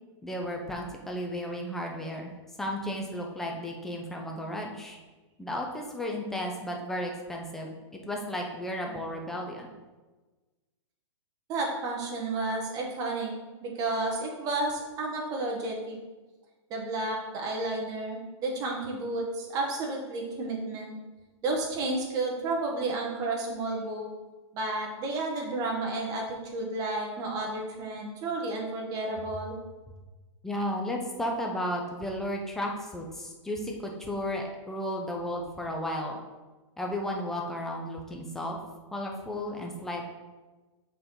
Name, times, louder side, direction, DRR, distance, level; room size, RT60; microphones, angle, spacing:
voice 1, 0.2-2.3 2.6-5.0 5.4-9.7 30.4-36.2 36.8-38.6 38.9-40.1, left 1 dB, ahead, 0 dB, 0.5 m, -34 dB
voice 2, 11.5-13.3 13.6-16.0 16.7-20.9 21.4-24.1 24.5-29.6, right 2 dB, 20° right, -1 dB, 1.1 m, -31 dB
6.8 x 4.2 x 3.8 m, 1.2 s
hypercardioid pair, 160°, 16 cm